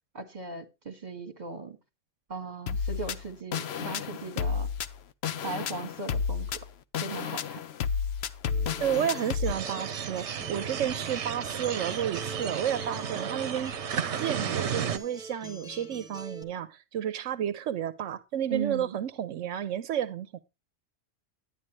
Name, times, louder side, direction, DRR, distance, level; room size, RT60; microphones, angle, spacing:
voice 1, 0.1-1.8 2.3-4.7 5.4-6.6 7.0-7.6 18.5-19.0, right 4 dB, 35° right, 1.9 m, -37 dB
sound 1, 2.7-9.5, left 6 dB, 65° left, 0.9 m, -31 dB
Acoustic guitar, 8.4-16.4, equal, 5° right, 1.3 m, -45 dB
voice 2, 8.8-13.7 14.2-20.4, right 10 dB, 90° right, 1.1 m, -31 dB
sound 2, 9.4-15.0, right 8 dB, 70° right, 1.1 m, -33 dB
11.0 x 9.3 x 3.1 m
omnidirectional pair, 1.2 m